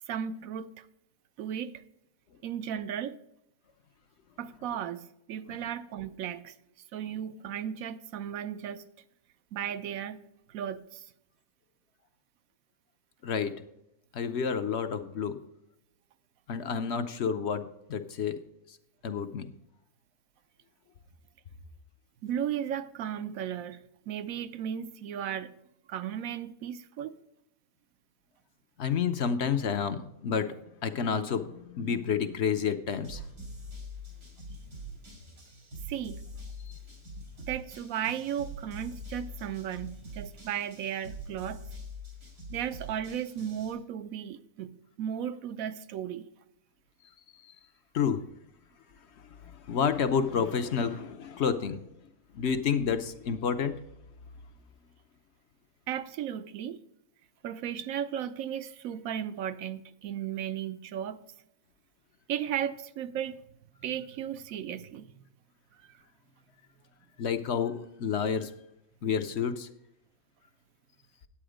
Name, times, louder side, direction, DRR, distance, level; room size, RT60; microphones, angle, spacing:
voice 1, 0.1-0.9 1.4-1.8 2.4-3.2 4.4-6.5 6.9-8.8 9.5-11.0 22.2-23.8 24.1-25.5 25.9-27.2 35.9-36.2 37.4-41.6 42.5-46.3 55.9-56.8 57.4-61.2 62.3-63.4 63.8-65.2, right 9 dB, 75° right, 1.0 m, -35 dB
voice 2, 13.2-13.6 14.1-15.4 16.5-18.4 19.0-19.5 28.8-33.2 36.7-36.8 47.4-47.5 47.9-48.2 49.7-51.8 52.3-53.8 67.2-68.5 69.0-69.7, left 6 dB, 60° left, 0.8 m, -29 dB
sound 1, 33.0-43.7, equal, 90° right, 3.7 m, -44 dB
10.0 x 8.5 x 5.0 m
omnidirectional pair, 1.5 m